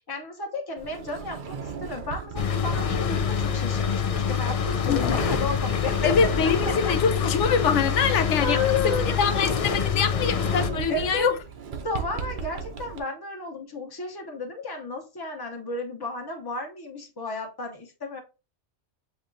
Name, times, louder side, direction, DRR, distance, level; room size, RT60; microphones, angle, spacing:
voice 1, 0.1-6.0 6.6-6.9 7.9-9.2 9.7-9.9 10.9-11.3 11.8-18.2, left 3 dB, 20° left, 0.8 m, -33 dB
Sliding door, 0.8-13.0, right 5 dB, 50° right, 0.7 m, -38 dB
sound 1, 2.4-10.7, left 7 dB, 55° left, 0.4 m, -26 dB
voice 2, 4.9-5.2 6.0-8.6 8.8-11.3, left 6 dB, 80° left, 0.9 m, -24 dB
7.0 x 2.9 x 2.6 m
omnidirectional pair, 1.2 m